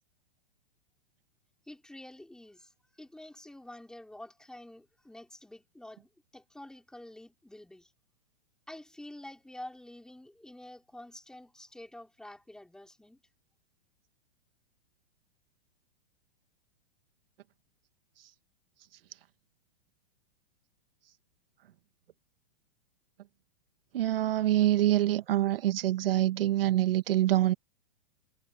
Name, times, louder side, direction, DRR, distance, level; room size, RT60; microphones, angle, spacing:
voice 1, 1.7-7.9 8.7-13.2, left 1 dB, ahead, 4.5 m, -48 dB
voice 2, 23.9-27.5, right 14 dB, 70° right, 1.7 m, -25 dB
supercardioid pair, 160°, 29 cm